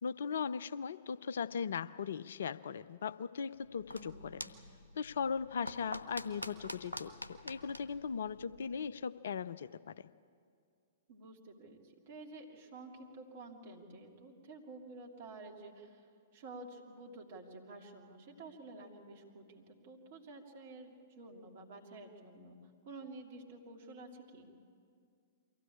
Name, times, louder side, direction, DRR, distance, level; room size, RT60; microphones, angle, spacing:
voice 1, 0.0-4.4 4.9-10.0, left 6 dB, 60° left, 15 dB, 0.5 m, -38 dB
sound 1, 3.5-8.9, left 1 dB, 85° left, 1.0 m, -47 dB
voice 2, 3.9-4.3 11.1-16.1 16.3-22.6 22.8-24.5, right 2 dB, 50° right, 0 dB, 2.9 m, -51 dB
23.5 x 16.0 x 8.6 m, 2.3 s
figure-of-eight pair, 105°, 0 cm